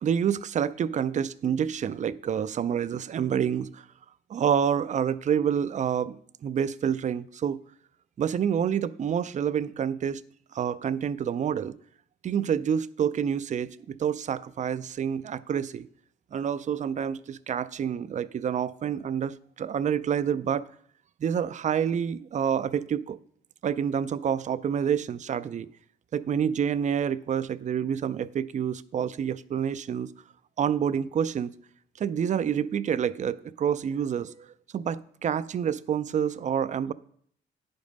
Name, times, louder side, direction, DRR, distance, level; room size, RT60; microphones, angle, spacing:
voice 1, 0.0-3.8 4.3-7.6 8.2-10.2 10.5-11.7 12.2-15.9 16.3-20.7 21.2-23.2 23.6-25.7 26.1-30.1 30.6-31.5 32.0-34.5 34.7-36.9, right 8 dB, 40° right, 0.4 m, -28 dB
9.7 x 5.2 x 5.2 m
cardioid pair, 90°, 20 cm